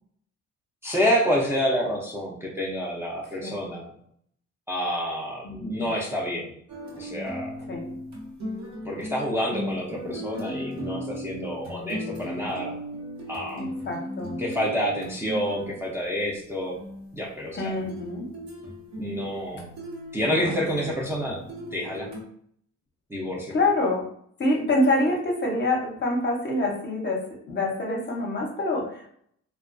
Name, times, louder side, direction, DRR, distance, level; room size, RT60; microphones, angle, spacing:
voice 1, 0.8-3.9 4.7-6.5 7.0-7.5 8.8-12.8 13.3-13.6 14.4-16.8 17.1-17.8 19.0-19.7 20.1-21.4 21.7-22.1 23.1-23.5, equal, 10° right, -4 dB, 0.5 m, -28 dB
sound 1, 6.7-15.9 16.7-22.2, equal, 65° right, 0.9 m, -37 dB
voice 2, 13.5-14.4 17.5-18.3 20.2-20.3 23.5-24.0 24.4-29.1, left 2 dB, 35° left, 0 dB, 0.7 m, -26 dB
2.2 x 2.2 x 2.4 m, 0.65 s
cardioid pair, 90°, 30 cm